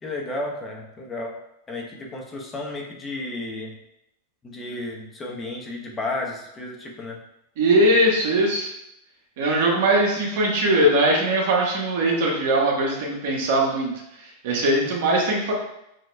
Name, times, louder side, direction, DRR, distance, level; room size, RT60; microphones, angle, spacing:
voice 1, 0.0-1.3 1.7-3.8 4.4-7.2, left 2 dB, 20° left, -1 dB, 0.9 m, -32 dB
voice 2, 7.6-8.7 9.4-13.9 14.4-15.5, right 1 dB, 65° right, -2 dB, 1.3 m, -20 dB
6.3 x 3.0 x 2.3 m, 0.82 s
hypercardioid pair, 120°, 0 cm